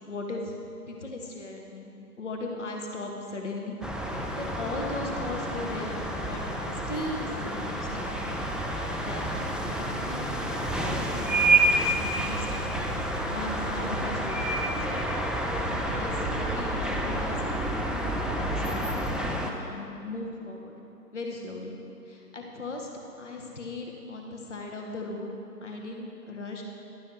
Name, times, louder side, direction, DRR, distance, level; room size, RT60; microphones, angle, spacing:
voice 1, 0.1-0.5 0.9-8.2 8.5-12.9 13.3-14.9 15.7-17.7 18.3-20.7 21.1-21.7 22.1-22.9 23.2-25.3 25.6-26.6, left 2 dB, 50° left, 1 dB, 0.9 m, -38 dB
sound 1, 3.8-19.5, right 1 dB, ahead, 0.3 m, -29 dB
11.0 x 7.1 x 3.3 m, 2.7 s
figure-of-eight pair, 160°, 48 cm